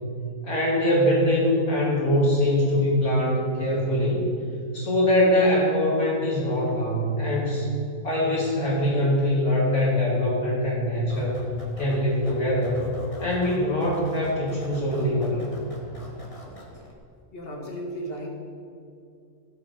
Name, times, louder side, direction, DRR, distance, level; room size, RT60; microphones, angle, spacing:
voice 1, 0.4-4.3 4.7-7.7 8.0-11.4 11.8-12.9 13.2-15.4, left 1 dB, 80° left, -5 dB, 3.9 m, -23 dB
sound 1, 11.1-16.9, equal, 25° left, 1.7 m, -43 dB
voice 2, 17.3-18.3, right 1 dB, 40° left, 0 dB, 2.1 m, -34 dB
16.5 x 6.0 x 6.5 m, 2.4 s
omnidirectional pair, 1.5 m